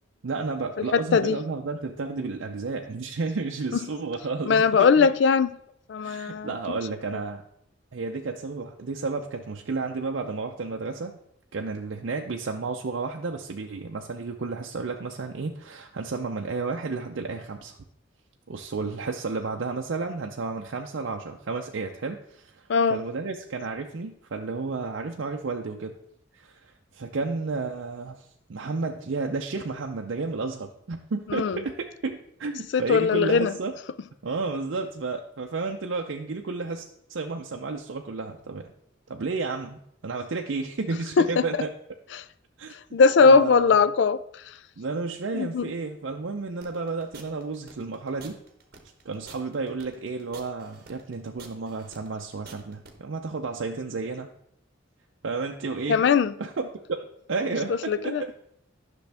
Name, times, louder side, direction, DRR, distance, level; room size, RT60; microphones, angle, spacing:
voice 1, 0.2-5.1 6.0-7.4 7.9-11.2 11.5-17.8 18.5-26.0 26.3-33.7 34.2-38.7 39.1-41.7 42.6-42.7 43.2-43.7 44.8-48.4 49.1-54.3 55.2-56.0 56.4-58.3, right 4 dB, 70° right, 0.5 m, -32 dB
voice 2, 0.8-1.4 3.7-3.9 4.4-5.5 5.9-6.6 7.1-7.2 22.7-23.1 31.3-31.6 32.7-33.5 34.0-34.1 40.9-41.7 42.1-42.2 42.7-44.5 45.3-45.7 55.9-56.4 57.4-58.3, left 5 dB, 60° left, 0.3 m, -21 dB
sound 1, 46.6-52.9, right 4 dB, 50° right, 1.1 m, -48 dB
10.5 x 6.1 x 3.4 m
head